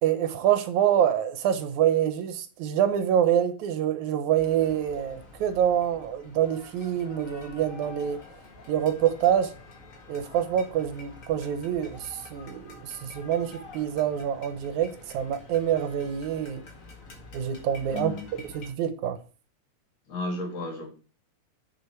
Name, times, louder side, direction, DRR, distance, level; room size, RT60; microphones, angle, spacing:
voice 1, 0.0-8.2 8.7-9.5 10.1-16.6 17.3-18.1 18.5-19.2, right 10 dB, 80° right, 2.4 m, -26 dB
sound 1, 4.4-18.7, left 2 dB, 35° left, 1.7 m, -48 dB
voice 2, 17.9-18.2 20.1-20.9, left 2 dB, 60° left, 3.6 m, -33 dB
9.9 x 5.5 x 4.5 m
omnidirectional pair, 3.3 m